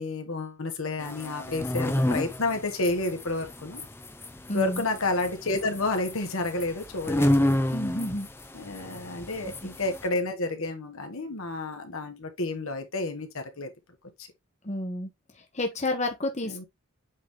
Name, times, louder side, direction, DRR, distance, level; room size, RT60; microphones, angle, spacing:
voice 1, 0.0-3.8 4.5-7.5 8.5-13.7 14.2-14.3 16.4-16.6, left 2 dB, 75° left, 1.5 m, -30 dB
sound 1, 1.0-10.1, left 1 dB, 10° left, 0.6 m, -30 dB
voice 2, 4.5-4.8 7.7-8.3 14.6-15.1 15.5-16.6, left 1 dB, 30° left, 1.0 m, -30 dB
8.3 x 3.8 x 3.2 m
head